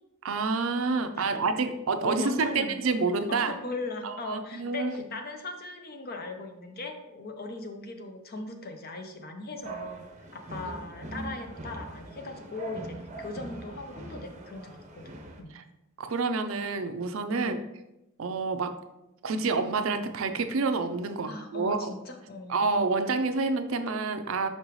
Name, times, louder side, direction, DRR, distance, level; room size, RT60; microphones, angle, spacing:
voice 1, 0.2-3.5 4.0-5.1 10.6-10.7 11.1-11.3 15.5-15.6 16.0-17.6 18.2-18.8 19.2-21.9 22.5-24.5, right 4 dB, 70° right, 8 dB, 0.5 m, -28 dB
voice 2, 1.0-2.8 3.3-10.1 10.3-15.1 15.4-15.5 17.3-17.6 21.3-22.6, left 3 dB, 45° left, 5 dB, 0.7 m, -39 dB
sound 1, 9.6-15.4, right 2 dB, 35° right, 0.7 m, -42 dB
5.8 x 5.3 x 3.1 m, 0.91 s
head